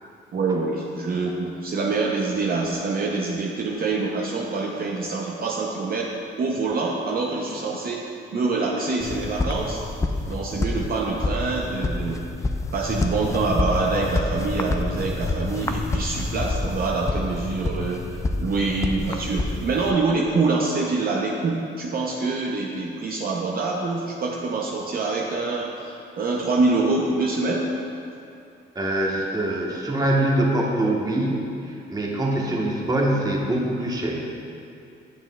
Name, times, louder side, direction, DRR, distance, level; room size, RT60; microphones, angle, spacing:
voice 1, 0.3-8.0 8.3-9.8 10.3-27.7 32.4-32.6, right 3 dB, 50° right, -1 dB, 0.6 m, -25 dB
sound 1, 9.0-19.9, left 2 dB, 15° left, 0.3 m, -28 dB
voice 2, 28.7-34.1, right 1 dB, 20° right, -2 dB, 1.0 m, -24 dB
7.6 x 7.2 x 2.2 m, 2.6 s
cardioid pair, 90°, 20 cm